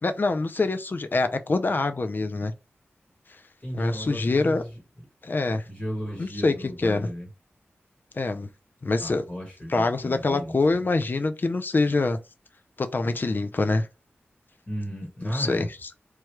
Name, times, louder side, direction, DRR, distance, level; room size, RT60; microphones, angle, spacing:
voice 1, 0.0-2.5 3.8-4.6 5.2-5.6 6.2-7.1 8.1-8.5 8.8-9.2 9.7-12.2 12.8-13.9 15.2-15.9, left 3 dB, 45° left, 0.4 m, -25 dB
voice 2, 3.6-4.7 5.7-7.3 9.0-10.8 14.7-15.7, equal, 30° left, 1.2 m, -35 dB
3.2 x 2.3 x 3.0 m
cardioid pair, 50°, 4 cm